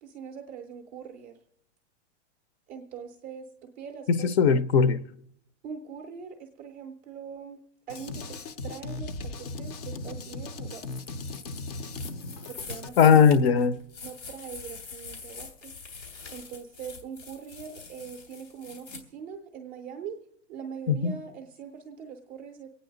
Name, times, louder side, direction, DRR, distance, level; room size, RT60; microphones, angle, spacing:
voice 1, 0.0-1.3 2.7-4.3 5.6-7.6 7.9-8.4 8.6-10.8 12.5-13.2 14.0-15.7 16.3-20.2 20.5-22.7, right 6 dB, 15° right, 0.4 m, -42 dB
voice 2, 4.1-5.0 13.0-13.8 20.9-21.1, left 6 dB, 60° left, 0.8 m, -19 dB
Drum kit, 7.9-12.9, left 2 dB, 35° left, 0.5 m, -37 dB
sound 1, 10.9-19.0, left 4 dB, 90° left, 2.9 m, -44 dB
24.0 x 9.0 x 3.9 m
supercardioid pair, 175°, 36 cm